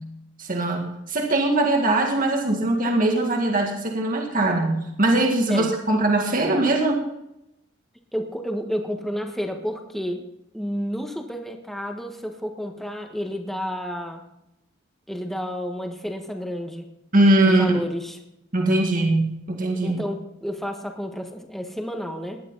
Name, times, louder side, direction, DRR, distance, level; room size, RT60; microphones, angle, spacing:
voice 1, 0.4-7.0 17.1-17.7 18.5-20.0, right 2 dB, 45° right, 2 dB, 2.0 m, -21 dB
voice 2, 8.1-10.2 10.5-14.2 15.1-16.9 17.4-18.2 19.8-22.4, equal, ahead, 3 dB, 1.5 m, -30 dB
18.0 x 11.5 x 4.0 m, 0.84 s
head